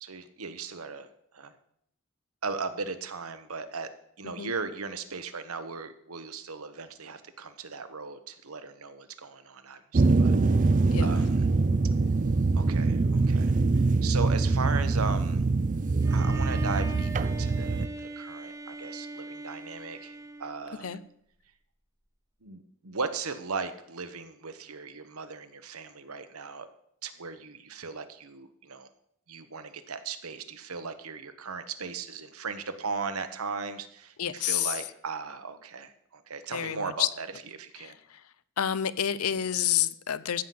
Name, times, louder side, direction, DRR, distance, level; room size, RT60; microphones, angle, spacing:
voice 1, 0.0-1.1 1.3-1.5 2.4-3.9 4.2-11.4 12.5-13.5 14.0-15.4 16.1-20.9 22.4-26.7 27.0-28.9 29.3-37.3 37.5-37.9, right 4 dB, 80° right, 1.2 m, -37 dB
sound 1, 9.9-17.9, right 3 dB, 35° right, 0.5 m, -24 dB
voice 2, 10.9-11.2 20.8-21.0 34.2-34.7 36.5-37.1 37.8-38.2 38.6-40.4, left 10 dB, 85° left, 0.7 m, -29 dB
Bowed string instrument, 16.0-21.1, right 2 dB, 15° right, 0.9 m, -41 dB
15.0 x 5.7 x 7.7 m
head